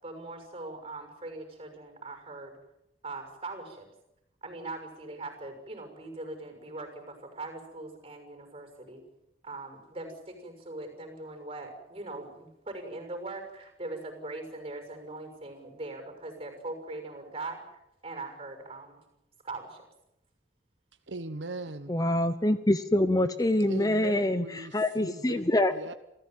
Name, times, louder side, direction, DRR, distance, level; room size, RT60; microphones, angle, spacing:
voice 1, 0.0-2.5 3.0-3.9 4.4-9.0 9.4-19.0 19.4-19.9, right 2 dB, 30° right, 5 dB, 6.3 m, -41 dB
voice 2, 21.1-21.9 23.7-25.4 25.7-25.9, right 3 dB, 75° right, 10 dB, 1.1 m, -39 dB
voice 3, 21.9-25.7, left 1 dB, 20° left, 11 dB, 0.8 m, -25 dB
27.5 x 16.0 x 9.1 m, 0.87 s
head